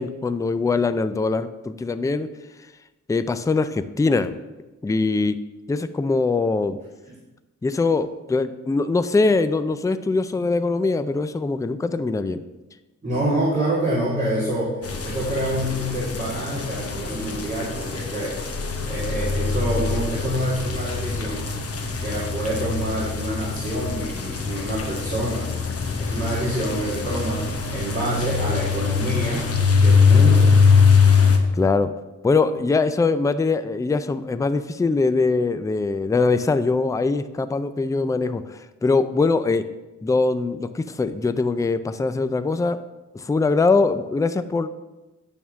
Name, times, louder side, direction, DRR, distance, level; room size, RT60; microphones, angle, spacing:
voice 1, 0.0-2.3 3.1-4.4 4.8-5.4 5.7-6.8 7.6-12.4 31.6-31.9 32.2-39.6 40.0-42.8 43.1-44.7, left 3 dB, 10° left, 12 dB, 0.3 m, -22 dB
voice 2, 13.0-18.4 18.9-21.5 22.0-25.4 26.0-29.5 29.8-30.5, right 1 dB, 25° right, -7 dB, 2.1 m, -27 dB
sound 1, 14.8-31.4, left 5 dB, 50° left, 0.9 m, -22 dB
8.7 x 3.6 x 6.8 m, 1.1 s
wide cardioid pair, 120°, 30 cm